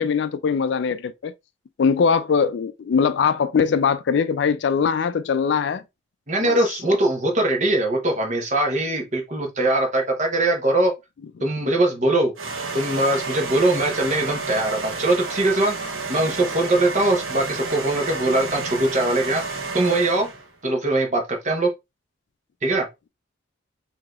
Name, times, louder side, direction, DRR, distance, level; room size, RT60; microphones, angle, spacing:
voice 1, 0.0-1.3 1.8-5.8 6.4-6.6, left 6 dB, 60° left, 0.3 m, -21 dB
voice 2, 6.3-10.9 11.4-12.3 12.7-15.7 16.1-19.4 19.7-20.3 20.6-21.7 22.6-22.9, right 2 dB, 35° right, 1.0 m, -21 dB
Machine Noise, 12.4-20.5, right 4 dB, 85° right, 0.9 m, -31 dB
4.8 x 2.8 x 2.4 m
head